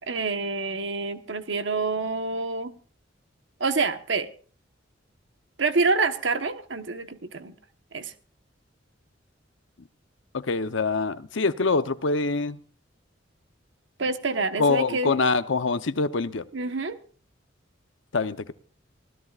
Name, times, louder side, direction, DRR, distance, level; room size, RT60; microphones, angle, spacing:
voice 1, 0.1-2.7 3.6-4.3 5.6-7.5 7.9-8.1 14.0-15.1 16.5-17.0, right 3 dB, 70° right, 1.2 m, -27 dB
voice 2, 10.3-12.6 14.6-16.5 18.1-18.5, left 3 dB, 80° left, 0.8 m, -25 dB
24.0 x 16.5 x 2.4 m
head